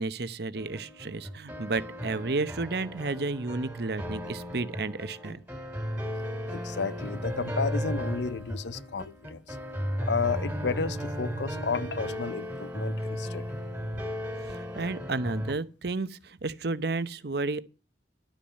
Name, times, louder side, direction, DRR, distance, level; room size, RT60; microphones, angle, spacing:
voice 1, 0.0-5.4 14.4-17.6, right 3 dB, 60° right, 0.8 m, -32 dB
sound 1, 0.5-15.5, equal, 10° right, 3.3 m, -35 dB
voice 2, 6.5-9.6 10.0-13.4, left 5 dB, 75° left, 0.6 m, -32 dB
11.5 x 8.7 x 6.3 m
head